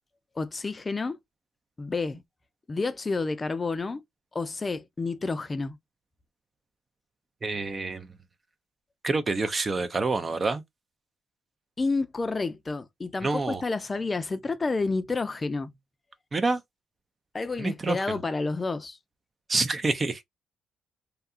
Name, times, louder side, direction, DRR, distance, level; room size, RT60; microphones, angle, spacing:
voice 1, 0.4-1.2 1.8-2.2 2.7-4.0 4.3-5.8 11.8-15.7 17.3-19.0, left 3 dB, 30° left, 0.4 m, -30 dB
voice 2, 7.4-8.1 9.0-10.6 13.2-13.6 16.3-16.6 17.6-18.0 19.5-20.2, right 3 dB, 35° right, 0.5 m, -27 dB
2.7 x 2.3 x 2.4 m
cardioid pair, 80°, 0 cm